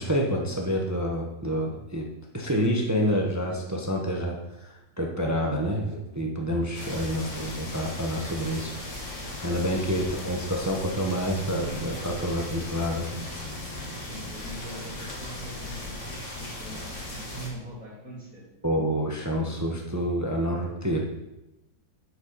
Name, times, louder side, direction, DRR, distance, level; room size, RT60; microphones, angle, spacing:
voice 1, 0.0-2.1 2.3-8.7 9.4-13.1 18.6-21.0, equal, 25° right, 0 dB, 0.4 m, -28 dB
sound 1, 6.7-17.5, left 1 dB, 45° left, 1.8 m, -37 dB
voice 2, 14.0-18.4, right 1 dB, 5° right, -5 dB, 2.4 m, -42 dB
8.4 x 6.2 x 4.0 m, 0.95 s
omnidirectional pair, 1.9 m